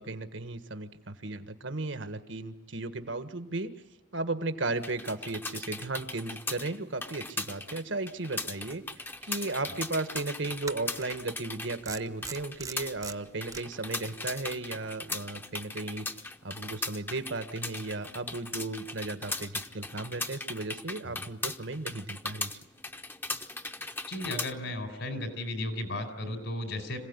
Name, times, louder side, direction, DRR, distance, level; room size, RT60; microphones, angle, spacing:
voice 1, 0.0-3.7 4.1-16.0 16.4-22.5, right 2 dB, 75° right, 10 dB, 1.6 m, -35 dB
sound 1, 4.7-24.5, left 3 dB, 10° left, 0.8 m, -39 dB
sound 2, 9.2-9.3 10.6-11.1 11.9-13.6, right 5 dB, 20° right, 0.8 m, -40 dB
voice 2, 24.1-27.0, left 1 dB, 80° left, 7 dB, 4.8 m, -35 dB
26.0 x 17.0 x 9.8 m, 1.1 s
head